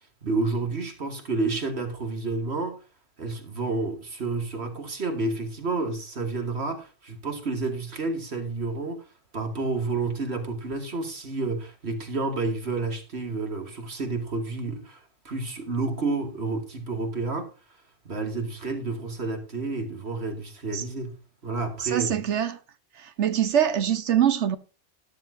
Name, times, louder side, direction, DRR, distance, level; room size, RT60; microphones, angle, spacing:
voice 1, 0.2-2.8 3.2-9.0 9.3-17.5 18.0-21.2 21.4-22.2, right 3 dB, 65° right, 2.6 m, -30 dB
voice 2, 21.8-22.6 23.0-24.6, right 9 dB, 80° right, 1.3 m, -24 dB
13.0 x 12.5 x 2.7 m
omnidirectional pair, 1.2 m